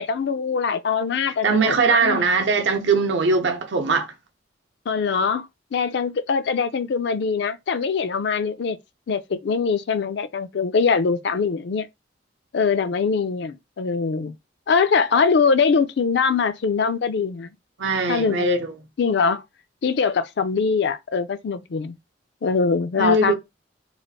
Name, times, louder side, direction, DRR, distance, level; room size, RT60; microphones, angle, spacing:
voice 1, 0.0-2.2 4.9-8.8 9.1-11.9 12.5-14.4 14.7-17.5 18.1-18.5 19.0-19.4 19.8-22.0 22.4-23.3, left 5 dB, 65° left, 0.4 m, -22 dB
voice 2, 1.4-4.1 17.8-18.7 23.0-23.3, right 3 dB, 80° right, 0.7 m, -20 dB
3.2 x 2.4 x 4.0 m
head